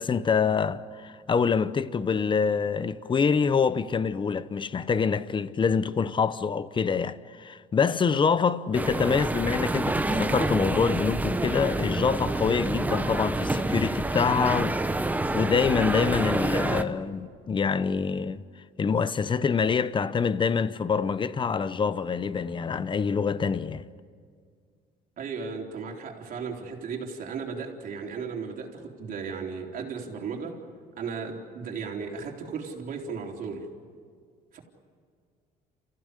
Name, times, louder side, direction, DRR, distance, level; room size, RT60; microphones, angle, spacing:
voice 1, 0.0-18.4 18.8-23.8, left 6 dB, 30° left, 0.9 m, -26 dB
sound 1, 8.7-16.8, right 2 dB, 10° right, 1.1 m, -28 dB
voice 2, 25.2-30.6 31.0-33.7 34.5-34.6, right 5 dB, 55° right, 4.0 m, -35 dB
29.5 x 15.5 x 9.9 m
cardioid pair, 110°, 17 cm